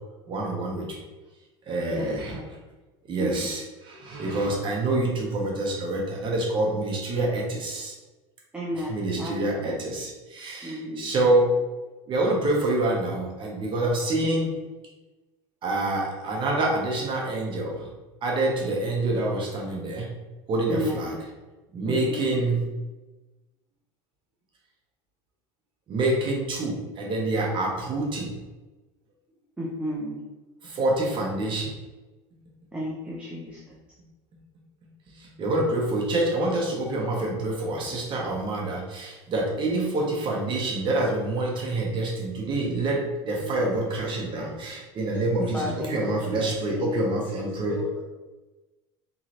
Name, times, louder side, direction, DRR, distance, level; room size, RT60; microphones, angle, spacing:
voice 1, 0.3-0.9 1.7-2.4 3.1-7.9 8.8-11.5 12.1-14.5 15.6-17.9 18.2-20.1 20.5-21.1 21.7-22.6 25.9-28.3 30.6-31.7 35.4-43.0 43.2-47.7, right 2 dB, 35° right, -1 dB, 0.8 m, -26 dB
voice 2, 1.9-2.5 3.2-3.5 8.5-9.8 10.6-11.0 20.7-21.0 21.8-22.3 29.6-30.2 32.7-33.6 43.4-43.7 45.4-46.4 46.7-46.8, equal, 10° right, -5 dB, 0.6 m, -33 dB
voice 3, 45.5-48.0, left 1 dB, 10° left, -5 dB, 1.1 m, -36 dB
3.6 x 3.1 x 2.9 m, 1.1 s
cardioid pair, 140°, 14 cm